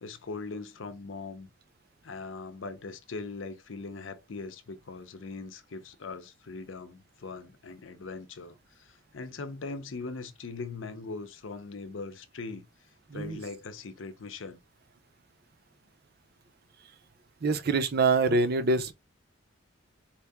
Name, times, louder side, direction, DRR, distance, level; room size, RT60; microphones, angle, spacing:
voice 1, 0.0-1.5 2.0-12.7 13.1-14.6, left 3 dB, 70° left, 0.6 m, -40 dB
voice 2, 13.1-13.4 17.4-18.9, right 3 dB, 50° right, 0.6 m, -25 dB
4.3 x 2.7 x 3.5 m
head